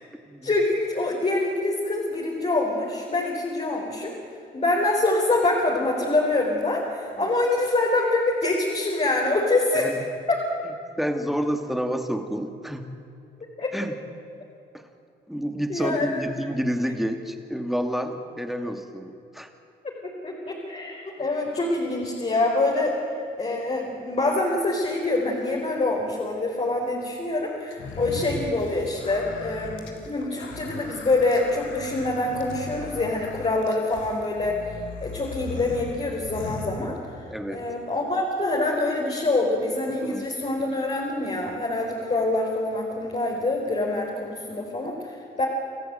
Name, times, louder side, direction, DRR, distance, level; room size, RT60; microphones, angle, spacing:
voice 1, 0.4-4.1 4.5-9.9 10.3-10.4 13.6-13.7 15.7-16.5 20.0-23.0 23.4-37.0 37.5-45.4, left 2 dB, 30° left, -2 dB, 4.5 m, -25 dB
voice 2, 11.0-12.8 13.7-14.0 14.7-14.9 15.3-19.5 37.3-37.6 40.0-40.3, equal, ahead, 6 dB, 2.4 m, -29 dB
sound 1, 27.7-37.4, left 3 dB, 75° left, 3.5 m, -38 dB
27.5 x 14.5 x 9.0 m, 2.6 s
cardioid pair, 90°, 20 cm